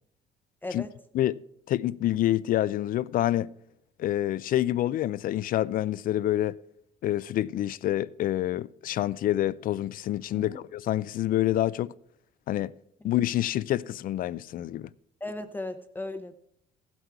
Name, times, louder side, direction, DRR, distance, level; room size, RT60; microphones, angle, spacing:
voice 1, 0.6-0.9 10.3-10.6 15.2-16.3, left 2 dB, 10° left, 0.7 m, -36 dB
voice 2, 1.7-3.5 4.0-6.6 7.0-11.9 12.5-12.7 13.0-14.9, left 13 dB, 55° left, 0.4 m, -27 dB
15.0 x 8.2 x 4.6 m
cardioid pair, 110°, 17 cm